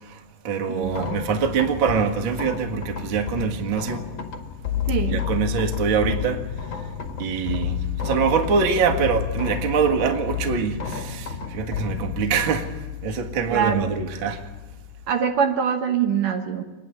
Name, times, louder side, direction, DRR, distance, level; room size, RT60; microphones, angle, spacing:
voice 1, 0.0-4.1 5.1-12.8 13.0-14.4, right 6 dB, 45° right, 1.7 m, -24 dB
voice 2, 0.7-1.1 4.9-5.2 13.1-13.2 13.5-13.9 15.1-16.6, right 7 dB, 65° right, 2.6 m, -24 dB
sound 1, 0.8-15.1, left 10 dB, 40° left, 1.9 m, -31 dB
27.0 x 10.5 x 9.6 m
omnidirectional pair, 4.6 m